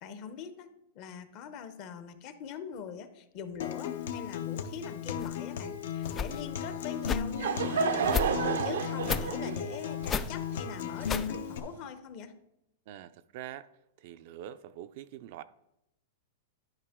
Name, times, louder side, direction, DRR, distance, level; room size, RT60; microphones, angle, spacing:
voice 1, 0.0-8.3 8.6-12.3, left 7 dB, 40° left, 10 dB, 0.8 m, -43 dB
Acoustic guitar, 3.6-11.6, left 8 dB, 75° left, 0.9 m, -36 dB
sound 1, 5.2-5.3 6.0-6.4 7.0-7.2 8.0-8.3 9.0-9.3 10.0-10.3 11.0-11.3, left 6 dB, 20° left, 0.3 m, -32 dB
Laughter / Crowd, 7.0-11.7, right 6 dB, 90° right, 0.7 m, -32 dB
voice 2, 12.9-13.7 14.0-15.4, right 12 dB, 50° right, 12 dB, 0.4 m, -44 dB
11.5 x 5.2 x 3.7 m, 0.86 s
supercardioid pair, 150°, 0 cm